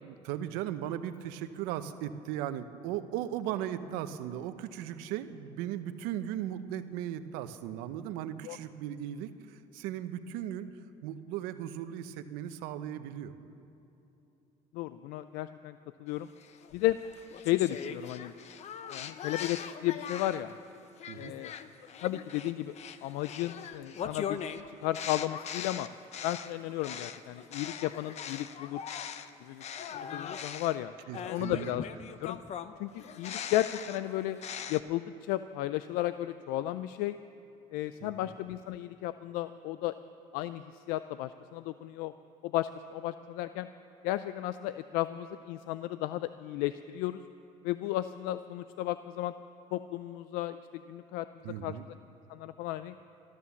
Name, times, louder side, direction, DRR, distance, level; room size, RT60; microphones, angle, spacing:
voice 1, 0.0-10.7 11.0-13.3 21.1-21.3 31.1-31.7 38.0-38.3 51.4-51.8, right 11 dB, 90° right, 11 dB, 0.7 m, -37 dB
voice 2, 14.7-16.3 16.7-17.0 17.4-18.3 18.9-20.6 21.1-21.5 22.0-22.7 23.0-24.4 24.7-25.9 26.2-28.8 29.4-29.6 30.1-30.9 31.2-31.9 32.2-32.4 32.8-34.4 34.7-37.2 37.7-39.9 40.3-42.1 42.4-43.7 44.0-47.2 47.6-49.3 49.7-51.8 52.3-53.0, left 15 dB, 85° left, 13 dB, 0.4 m, -34 dB
sound 1, 16.4-20.5 21.0-29.3 29.6-34.8, left 8 dB, 50° left, 0.7 m, -41 dB
14.0 x 12.5 x 7.0 m, 3.0 s
cardioid pair, 100°, 15 cm